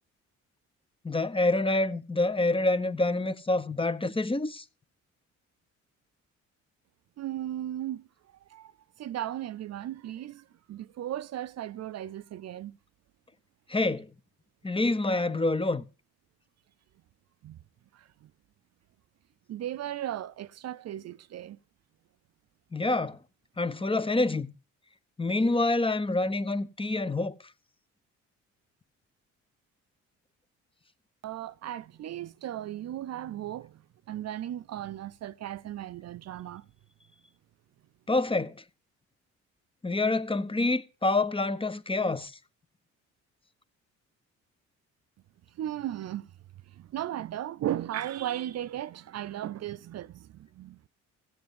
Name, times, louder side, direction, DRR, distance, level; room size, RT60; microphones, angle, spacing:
voice 1, 1.0-4.6 13.7-14.1 14.6-15.8 22.7-23.2 23.6-24.5 25.2-27.3 38.1-38.5 39.8-42.3, left 2 dB, 15° left, 1.0 m, -27 dB
voice 2, 7.2-8.1 8.5-8.7 9.0-12.8 17.4-17.6 17.9-18.3 19.5-21.6 31.2-33.8 34.1-36.6 45.6-46.3 46.7-50.9, right 12 dB, 60° right, 0.6 m, -36 dB
14.5 x 7.8 x 5.3 m
cardioid pair, 90°, 30 cm